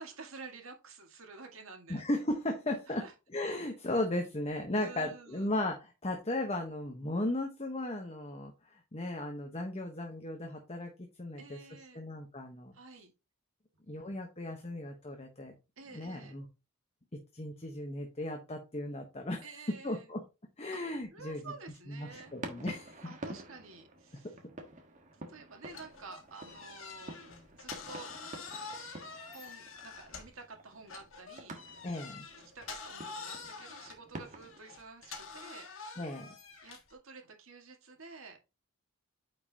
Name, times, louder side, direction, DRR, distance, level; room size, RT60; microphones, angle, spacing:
voice 1, 0.0-2.0 3.0-3.1 4.8-5.5 11.4-12.1 12.7-13.1 15.8-16.3 19.4-20.1 21.1-22.3 23.0-24.4 25.3-27.2 27.5-28.5 29.3-31.6 32.5-35.7 36.6-38.5, right 4 dB, 70° right, 1.8 m, -50 dB
voice 2, 1.9-3.0 3.3-11.6 11.9-12.7 13.9-15.5 15.9-16.5 17.1-20.2 20.6-21.5 21.9-23.1 31.8-32.3 36.0-36.3, left 1 dB, 30° left, 1.1 m, -36 dB
sound 1, 22.1-34.6, right 2 dB, 35° right, 1.4 m, -49 dB
sound 2, 25.7-30.5 30.9-36.9, left 5 dB, 65° left, 1.6 m, -46 dB
9.1 x 5.1 x 2.9 m
head